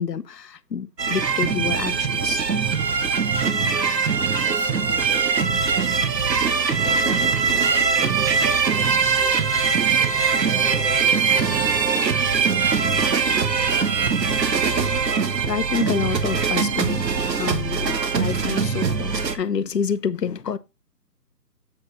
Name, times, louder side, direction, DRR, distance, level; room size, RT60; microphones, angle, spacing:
voice 1, 0.0-2.5 15.5-20.6, left 7 dB, 75° left, 0.9 m, -28 dB
sound 1, 1.0-19.4, right 5 dB, 85° right, 1.4 m, -21 dB
voice 2, 4.3-6.1 6.4-6.5 6.8-8.3 8.6-9.5 10.4-11.8 12.3-13.0, equal, 5° right, 1.0 m, -39 dB
7.8 x 4.9 x 4.0 m
hypercardioid pair, 170°, 49 cm